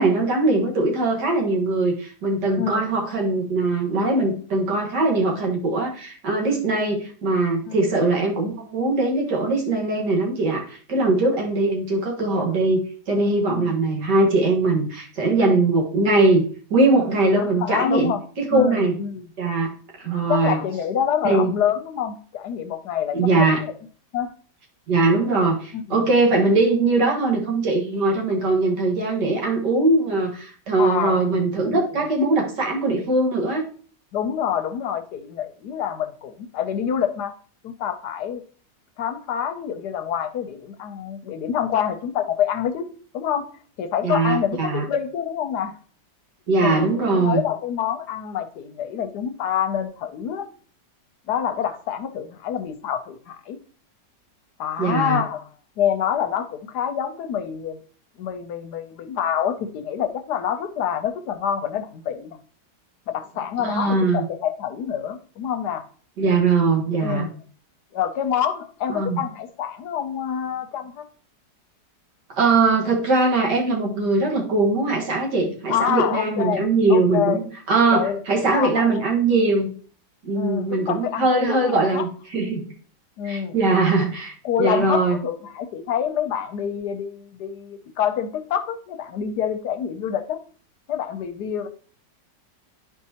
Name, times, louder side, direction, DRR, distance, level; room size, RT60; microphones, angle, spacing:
voice 1, 0.0-16.4 16.7-19.0 19.4-19.7 20.0-20.6 21.2-21.5 23.1-23.6 24.9-33.6 44.0-44.8 46.5-47.4 54.8-55.2 63.6-64.2 66.2-67.3 68.9-69.2 72.4-79.7 80.2-82.6 83.2-85.2, right 3 dB, 70° right, 0 dB, 2.1 m, -21 dB
voice 2, 2.6-2.9 7.7-7.9 13.5-13.7 17.3-18.2 18.5-19.3 20.3-23.7 24.1-24.3 25.7-26.1 30.8-31.3 31.6-31.8 34.1-37.3 37.6-38.4 39.0-42.9 43.1-43.5 43.8-45.8 46.6-50.5 51.3-53.6 54.6-55.5 55.8-57.8 58.2-62.4 63.1-65.8 67.0-67.4 67.9-71.1 75.7-76.6 76.9-77.4 77.9-79.4 80.3-82.1 83.2-83.5 84.4-90.4 90.9-91.7, left 9 dB, 70° left, 8 dB, 1.1 m, -27 dB
11.0 x 4.6 x 2.8 m, 0.42 s
omnidirectional pair, 1.9 m